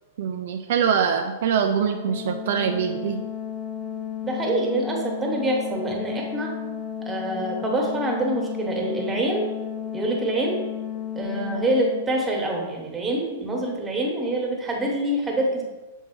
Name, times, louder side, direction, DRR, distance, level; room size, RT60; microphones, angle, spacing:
voice 1, 0.2-3.2, right 7 dB, 55° right, 4 dB, 0.4 m, -23 dB
Organ, 1.7-12.5, left 9 dB, 10° left, 0.9 m, -33 dB
voice 2, 4.2-6.5 7.0-9.5 9.9-10.6 11.1-15.6, right 1 dB, 15° right, 0 dB, 1.4 m, -25 dB
7.2 x 4.4 x 3.0 m, 1.2 s
figure-of-eight pair, 100°, 0 cm